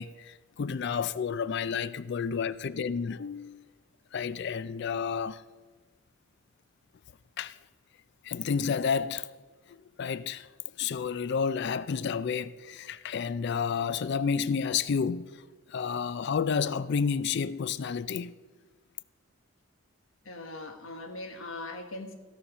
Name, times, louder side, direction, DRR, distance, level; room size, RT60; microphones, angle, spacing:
voice 1, 0.0-3.6 4.1-5.4 7.4-7.6 8.2-9.3 9.7-10.5 10.8-15.4 15.7-18.3, left 6 dB, 55° left, 0.4 m, -30 dB
voice 2, 20.2-22.1, left 2 dB, 75° left, 1.3 m, -40 dB
16.0 x 5.7 x 6.1 m
head